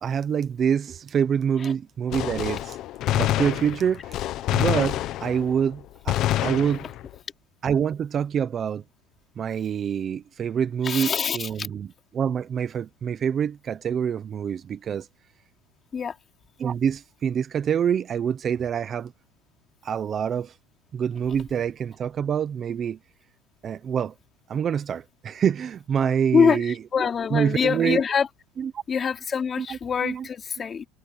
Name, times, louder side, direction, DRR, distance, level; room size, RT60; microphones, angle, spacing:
voice 1, 0.0-2.8 3.1-6.9 7.6-8.8 9.4-11.9 12.1-15.1 16.6-19.1 19.8-20.5 20.9-23.0 23.6-24.1 24.5-28.0 28.6-28.8 29.6-30.3, right 8 dB, 25° right, 0.8 m, -26 dB
Gunshot gunfire, 2.1-5.6 6.1-7.2, left 13 dB, 45° left, 1.0 m, -27 dB
voice 2, 10.8-11.7 15.9-16.1 26.3-28.3 28.9-30.9, left 6 dB, 25° left, 3.1 m, -24 dB
cardioid pair, 155°, 0 cm